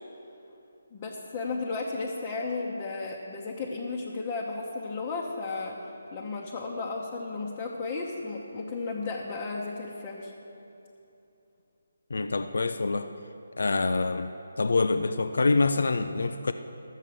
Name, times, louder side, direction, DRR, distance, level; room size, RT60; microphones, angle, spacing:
voice 1, 0.9-10.3, left 3 dB, 25° left, -3 dB, 1.0 m, -34 dB
voice 2, 12.1-13.1 13.6-14.3 14.6-16.5, left 3 dB, 70° left, 9 dB, 0.5 m, -26 dB
13.0 x 7.4 x 6.8 m, 2.8 s
figure-of-eight pair, 165°, 0 cm